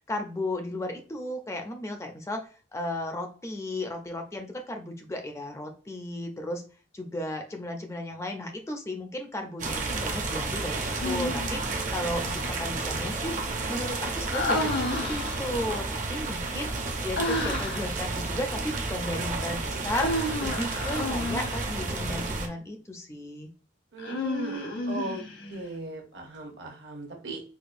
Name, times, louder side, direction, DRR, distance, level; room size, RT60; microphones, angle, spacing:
voice 1, 0.1-6.6 6.9-13.4 13.7-16.7 17.0-23.5, left 1 dB, 15° left, 4 dB, 0.4 m, -34 dB
sound 1, 9.6-22.5, right 3 dB, 40° right, 0.5 m, -31 dB
Human voice, 10.9-11.8 14.3-15.7 17.2-17.9 19.9-21.7 24.0-25.6, left 2 dB, 70° left, 1.0 m, -31 dB
voice 2, 23.9-25.2 25.5-27.4, right 2 dB, 70° right, 3 dB, 0.8 m, -37 dB
4.7 x 2.2 x 2.5 m, 0.37 s
head